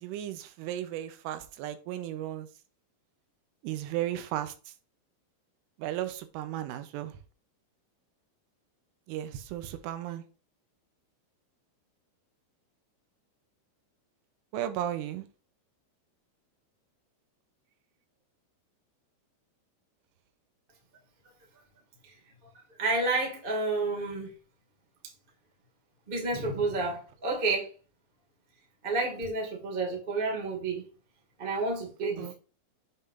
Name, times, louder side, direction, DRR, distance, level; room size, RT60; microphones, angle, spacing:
voice 1, 0.0-2.5 3.6-4.5 5.8-7.1 9.1-10.2 14.5-15.3 32.2-32.3, right 12 dB, 85° right, 3.3 m, -35 dB
voice 2, 22.8-24.3 26.1-27.7 28.8-30.9 31.4-32.3, right 3 dB, 60° right, 0.5 m, -30 dB
8.1 x 5.8 x 2.7 m
omnidirectional pair, 5.7 m